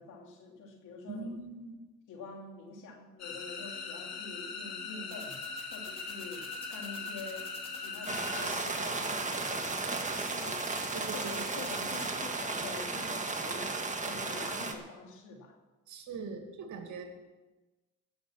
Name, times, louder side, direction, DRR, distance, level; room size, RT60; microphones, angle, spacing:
voice 1, 0.0-1.3 2.1-5.4 5.7-7.5 7.7-9.8 10.3-10.7 11.1-15.6, left 4 dB, 85° left, 2 dB, 2.6 m, -46 dB
voice 2, 1.1-1.7 10.9-11.6 15.9-17.0, right 4 dB, 70° right, 4 dB, 2.4 m, -41 dB
sound 1, 3.2-8.6, left 4 dB, 60° left, 2.4 m, -41 dB
sound 2, 5.1-12.1, left 2 dB, 20° left, 3.0 m, -48 dB
sound 3, 8.1-14.7, right 3 dB, 25° right, 1.7 m, -34 dB
16.5 x 6.7 x 7.2 m, 1.2 s
cardioid pair, 90°, 30 cm